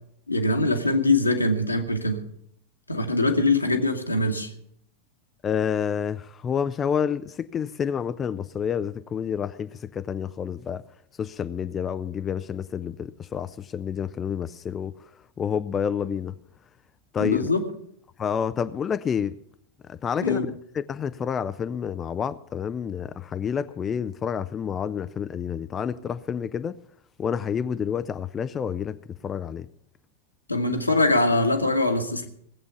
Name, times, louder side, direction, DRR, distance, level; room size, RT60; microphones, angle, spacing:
voice 1, 0.3-2.2 2.9-4.5 17.2-17.6 20.2-20.5 30.5-32.3, left 2 dB, 85° left, 1.6 m, -23 dB
voice 2, 5.4-10.8 11.2-15.1 15.4-16.3 17.1-17.5 18.2-19.4 19.9-26.8 27.2-29.7, left 7 dB, 25° left, 0.5 m, -29 dB
18.0 x 8.3 x 6.9 m
figure-of-eight pair, 90°, 0 cm